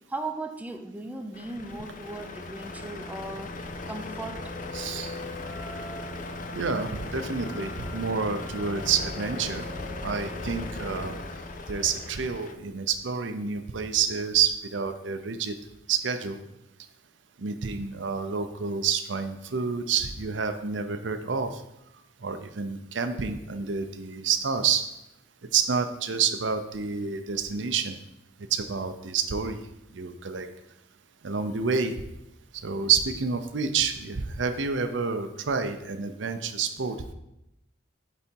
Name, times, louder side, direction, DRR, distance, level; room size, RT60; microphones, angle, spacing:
voice 1, 0.1-3.5 3.9-4.4, right 2 dB, 10° right, 5 dB, 0.6 m, -37 dB
Truck, 1.3-12.5, left 2 dB, 45° left, 0.6 m, -38 dB
sound 1, 4.4-11.7, left 3 dB, 70° left, 1.0 m, -45 dB
voice 2, 4.7-5.1 6.5-9.6 10.0-11.2 11.7-15.5 15.9-16.4 17.4-21.6 22.2-24.8 25.5-28.0 28.5-29.6 29.9-30.5 31.2-32.0 32.6-37.1, right 6 dB, 85° right, 9 dB, 0.7 m, -28 dB
8.8 x 4.2 x 4.6 m, 0.87 s
head